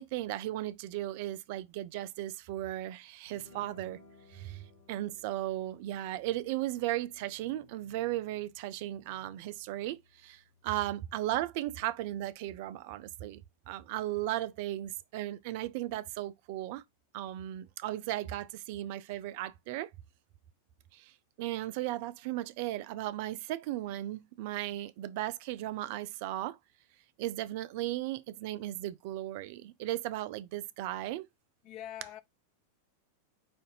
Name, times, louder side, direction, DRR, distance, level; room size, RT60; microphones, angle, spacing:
voice 1, 0.0-4.0 4.3-16.8 17.1-19.9 20.9-26.6 27.2-31.3, right 15 dB, 45° right, 0.3 m, -36 dB
sound 1, 3.3-11.0, left 2 dB, 75° left, 1.5 m, -61 dB
voice 2, 31.6-32.2, left 11 dB, 40° left, 0.5 m, -43 dB
4.9 x 2.6 x 3.9 m
figure-of-eight pair, 90°, 0 cm